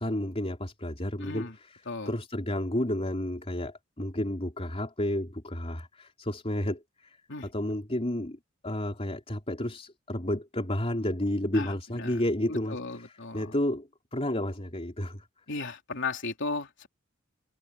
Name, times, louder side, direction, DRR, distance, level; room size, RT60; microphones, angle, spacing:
voice 1, 0.0-7.2 7.4-8.4 8.6-15.3, left 1 dB, 30° left, 3.8 m, -31 dB
voice 2, 1.2-1.6 1.9-2.1 7.3-7.5 11.5-12.1 12.5-13.5 15.5-16.9, left 3 dB, 60° left, 3.6 m, -36 dB
head